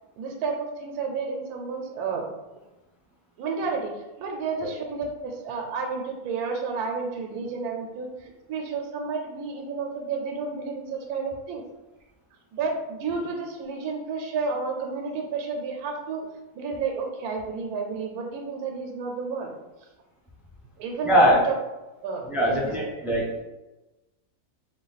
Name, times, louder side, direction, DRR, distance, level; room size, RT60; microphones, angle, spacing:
voice 1, 0.2-2.3 3.4-11.6 12.5-16.3 16.5-19.5 20.8-21.5 22.0-22.6 22.8-22.9, right 5 dB, 75° right, 2 dB, 1.1 m, -31 dB
voice 2, 21.0-21.4 22.3-23.4, equal, ahead, -5 dB, 0.5 m, -21 dB
3.9 x 2.3 x 4.0 m, 1.0 s
omnidirectional pair, 1.7 m